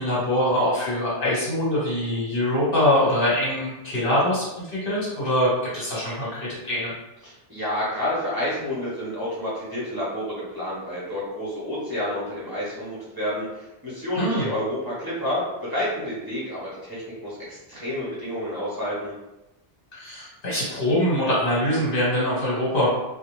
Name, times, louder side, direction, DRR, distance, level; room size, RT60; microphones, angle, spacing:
voice 1, 0.0-6.9 14.1-14.5 19.9-22.9, left 1 dB, 55° left, -7 dB, 1.3 m, -23 dB
voice 2, 7.2-19.1, left 1 dB, 25° right, -10 dB, 0.7 m, -29 dB
2.3 x 2.2 x 3.0 m, 0.97 s
omnidirectional pair, 1.1 m